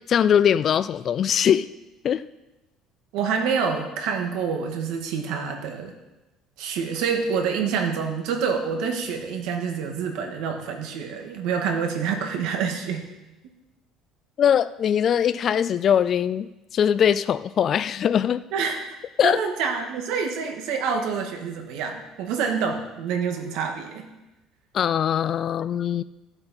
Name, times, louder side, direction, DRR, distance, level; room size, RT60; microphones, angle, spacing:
voice 1, 0.1-1.7 2.0-2.3 14.4-18.4 19.2-19.4 24.7-26.0, left 9 dB, 35° left, 14 dB, 0.3 m, -21 dB
voice 2, 3.1-5.9 6.6-13.1 18.5-19.0 19.2-24.1, right 6 dB, 75° right, 3 dB, 1.9 m, -27 dB
15.0 x 7.8 x 4.4 m, 1.0 s
cardioid pair, 150°, 0 cm